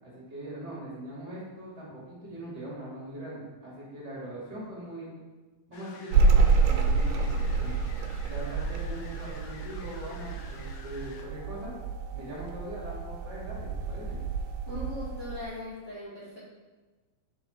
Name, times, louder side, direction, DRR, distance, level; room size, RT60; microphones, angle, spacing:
voice 1, 0.0-5.1 5.7-7.8 8.2-11.8 12.1-14.2, right 1 dB, 35° right, -7 dB, 1.9 m, -41 dB
sound 1, 5.7-11.2, left 4 dB, 85° left, 2.8 m, -50 dB
sound 2, 6.1-15.5, right 4 dB, 85° right, 2.5 m, -28 dB
voice 2, 14.7-16.4, left 1 dB, 65° left, -9 dB, 0.7 m, -39 dB
6.8 x 4.1 x 4.3 m, 1.2 s
omnidirectional pair, 4.6 m